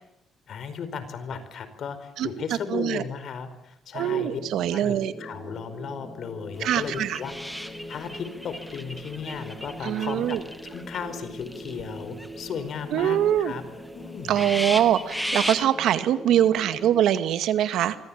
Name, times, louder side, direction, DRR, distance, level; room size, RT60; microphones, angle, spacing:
voice 1, 0.5-4.4 4.7-13.6 13.9-14.4, left 6 dB, 65° left, 12 dB, 4.9 m, -35 dB
voice 2, 2.7-3.0 3.9-5.1 6.6-7.2 9.8-10.4 12.9-13.5 14.3-18.0, right 11 dB, 85° right, 10 dB, 2.0 m, -23 dB
sound 1, 3.9-17.0, equal, 20° left, 6.6 m, -42 dB
sound 2, 6.6-11.0 11.4-12.6 13.0-13.1 13.4-13.5 13.9-14.0 14.2-15.7, equal, ahead, 2.6 m, -35 dB
27.0 x 24.0 x 8.9 m, 0.78 s
cardioid pair, 90°, 0 cm